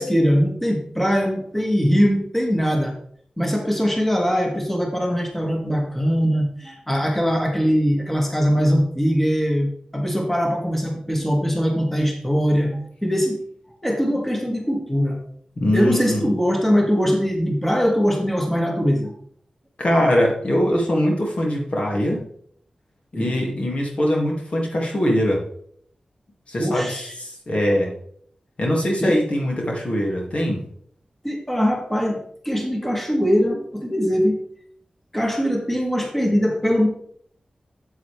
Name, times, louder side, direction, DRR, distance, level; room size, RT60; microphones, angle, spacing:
voice 1, 0.0-3.0 3.4-13.4 13.8-15.2 15.7-19.1 23.1-23.6 26.6-27.1 29.0-29.2 31.2-34.4 35.1-36.9, equal, 10° left, 1 dB, 2.0 m, -21 dB
voice 2, 15.6-16.2 19.8-22.2 23.1-25.4 26.5-27.9 28.6-30.6, equal, 55° left, -1 dB, 2.4 m, -22 dB
8.1 x 8.0 x 3.4 m, 0.63 s
cardioid pair, 45°, 2 cm